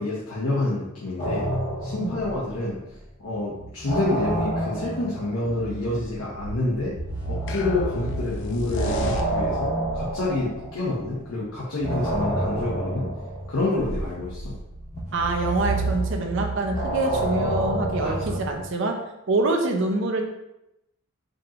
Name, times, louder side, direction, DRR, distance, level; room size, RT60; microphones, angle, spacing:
voice 1, 0.0-1.5 1.8-2.8 3.2-6.9 7.2-13.1 13.5-14.5 18.0-18.4, left 2 dB, 85° left, -7 dB, 0.8 m, -28 dB
sound 1, 1.2-3.0 3.3-11.3 11.8-18.7, right 1 dB, 35° left, 1.1 m, -29 dB
sound 2, 7.5-9.7, left 4 dB, 55° left, 0.3 m, -35 dB
voice 2, 15.1-19.0 19.3-20.2, right 2 dB, 60° right, 3 dB, 0.6 m, -25 dB
5.1 x 2.9 x 2.4 m, 0.88 s
head